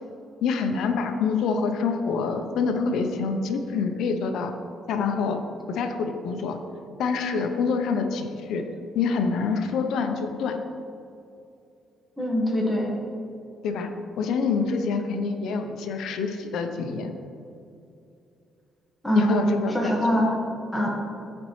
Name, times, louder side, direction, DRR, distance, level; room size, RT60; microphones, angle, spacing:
voice 1, 0.4-4.5 4.9-6.6 7.0-8.7 8.9-10.6 13.6-13.9 14.2-17.1 19.2-20.3, left 5 dB, 80° left, 6 dB, 0.6 m, -26 dB
voice 2, 12.2-12.9 19.0-20.3 20.7-20.9, equal, 5° left, -2 dB, 1.5 m, -23 dB
13.0 x 4.3 x 3.2 m, 2.6 s
cardioid pair, 90°, 0 cm